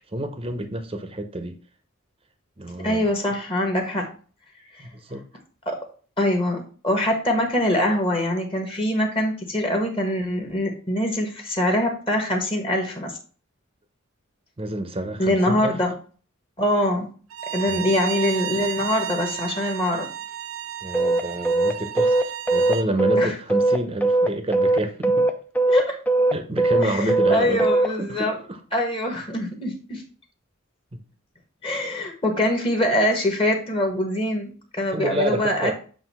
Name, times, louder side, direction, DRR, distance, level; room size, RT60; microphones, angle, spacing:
voice 1, 0.1-1.6 2.6-3.1 4.8-5.2 14.6-15.8 17.7-17.9 20.8-25.3 26.3-28.6 30.9-31.0 34.9-35.7, right 1 dB, 25° right, 0.7 m, -28 dB
voice 2, 2.8-4.1 5.7-5.8 6.2-13.2 15.2-15.9 16.6-17.1 17.5-20.1 23.2-23.3 25.7-26.0 26.8-28.4 28.7-30.0 31.6-35.7, left 1 dB, 25° left, 1.3 m, -23 dB
Bowed string instrument, 17.3-22.9, right 11 dB, 80° right, 0.6 m, -32 dB
sound 1, 20.9-27.9, right 2 dB, 10° left, 0.4 m, -19 dB
7.8 x 2.7 x 5.4 m
head